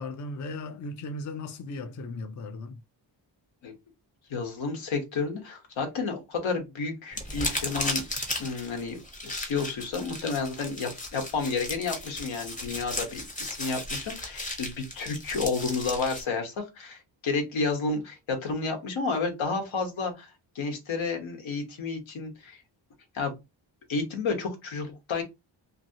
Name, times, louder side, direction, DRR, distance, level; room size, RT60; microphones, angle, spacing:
voice 1, 0.0-2.8, left 2 dB, 40° left, 0.4 m, -37 dB
voice 2, 4.3-8.0 8.4-9.0 9.2-20.3 20.5-22.6 23.1-23.4 23.9-25.2, left 4 dB, 80° left, 1.1 m, -31 dB
sound 1, 7.1-16.2, left 1 dB, 15° left, 0.7 m, -35 dB
2.8 x 2.7 x 2.7 m
wide cardioid pair, 140°, 46 cm